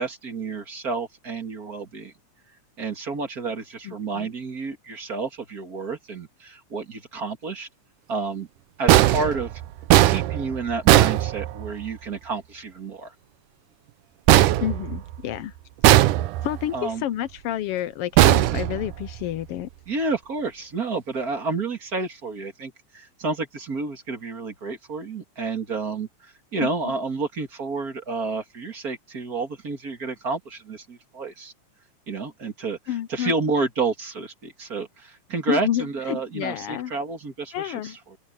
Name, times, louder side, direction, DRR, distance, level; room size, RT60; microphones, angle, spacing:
voice 1, 0.0-2.1 2.8-7.7 8.1-8.5 8.8-9.5 10.0-13.1 16.7-17.0 19.9-31.5 32.1-38.2, right 4 dB, 30° right, 2.3 m, -30 dB
voice 2, 3.8-4.3 14.6-15.5 16.4-19.7 26.6-26.7 32.9-33.3 35.5-36.9 37.5-38.0, left 12 dB, 85° left, 1.3 m, -29 dB
sound 1, 8.9-11.9 14.3-15.4 15.8-16.7 18.2-19.3, right 15 dB, 85° right, 2.3 m, -18 dB
open air
omnidirectional pair, 3.5 m